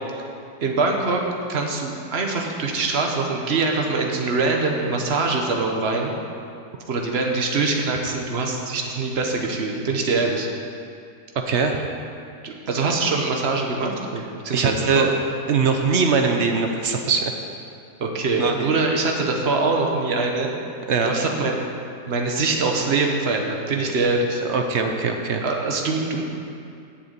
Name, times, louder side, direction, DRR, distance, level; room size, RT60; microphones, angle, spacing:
voice 1, 0.6-1.2 1.5-6.1 6.9-10.5 12.4-15.1 18.0-20.5 21.0-21.5 22.1-24.4 25.4-26.2, right 3 dB, 40° right, 1 dB, 1.2 m, -23 dB
voice 2, 11.3-11.9 14.5-15.1 15.5-17.3 18.4-18.7 20.9-21.1 24.4-25.4, right 5 dB, 60° right, 4 dB, 0.7 m, -21 dB
7.7 x 7.0 x 8.2 m, 2.5 s
omnidirectional pair, 1.9 m